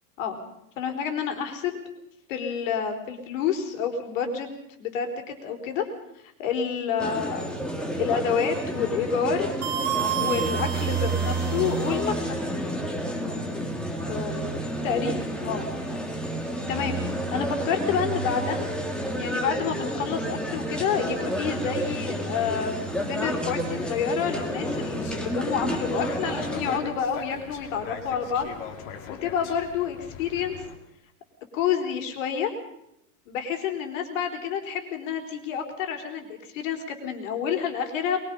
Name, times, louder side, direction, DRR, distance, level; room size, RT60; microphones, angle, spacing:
voice 1, 0.8-1.8 2.3-4.5 4.8-5.9 6.4-7.6 8.0-9.5 10.1-12.4 14.1-15.7 16.7-17.0 17.3-18.7 19.0-28.5 29.1-30.6 31.5-32.5 33.3-38.2, left 7 dB, 50° left, 5 dB, 4.1 m, -29 dB
sound 1, 7.0-26.8, right 1 dB, ahead, 1.9 m, -30 dB
sound 2, 9.6-12.0, right 10 dB, 45° right, 2.0 m, -30 dB
sound 3, 24.3-30.8, left 7 dB, 35° left, 2.7 m, -41 dB
22.0 x 22.0 x 5.5 m, 0.80 s
supercardioid pair, 160°, 48 cm